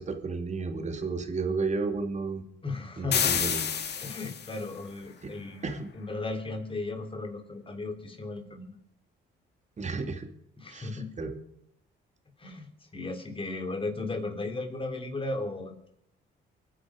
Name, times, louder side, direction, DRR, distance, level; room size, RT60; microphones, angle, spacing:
voice 1, 0.0-2.5 3.0-3.6 5.2-5.3 5.6-5.9 9.8-10.3 10.7-11.3, right 4 dB, 35° right, 6 dB, 2.6 m, -32 dB
voice 2, 2.6-3.4 4.0-5.7 5.9-8.7 10.6-11.1 12.4-12.7 12.9-15.9, left 3 dB, 25° left, 4 dB, 3.6 m, -35 dB
sound 1, 3.1-4.7, left 7 dB, 60° left, 2.1 m, -29 dB
24.0 x 10.0 x 5.2 m, 0.73 s
cardioid pair, 90°, 20 cm